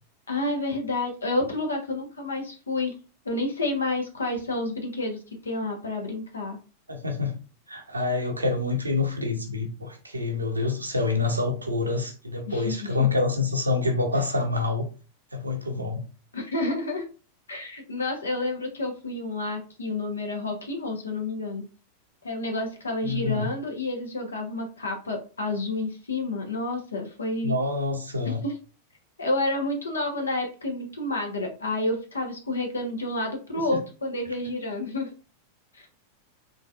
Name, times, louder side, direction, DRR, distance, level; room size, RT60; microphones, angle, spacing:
voice 1, 0.3-2.9 3.2-6.6 12.5-13.1 16.3-17.0 17.5-21.6 22.2-27.6 28.3-28.6 29.2-35.1 35.7-35.9, left 2 dB, 75° left, 1.1 m, -29 dB
voice 2, 6.9-7.3 7.7-14.9 15.3-16.0 23.0-23.5 27.4-28.4, left 3 dB, 80° right, 0.9 m, -27 dB
3.8 x 3.7 x 2.4 m
figure-of-eight pair, 90°, 0 cm